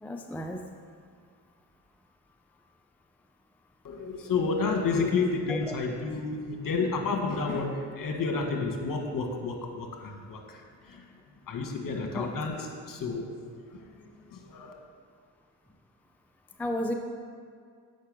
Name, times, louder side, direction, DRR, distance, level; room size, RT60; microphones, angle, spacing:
voice 1, 0.0-0.7 5.5-5.6 12.1-12.3 16.6-16.9, left 1 dB, 5° left, 4 dB, 0.5 m, -32 dB
voice 2, 3.8-11.1 11.5-13.3 13.7-14.7, left 4 dB, 50° left, 2 dB, 1.5 m, -31 dB
8.0 x 5.4 x 5.3 m, 2.1 s
supercardioid pair, 55°, 42 cm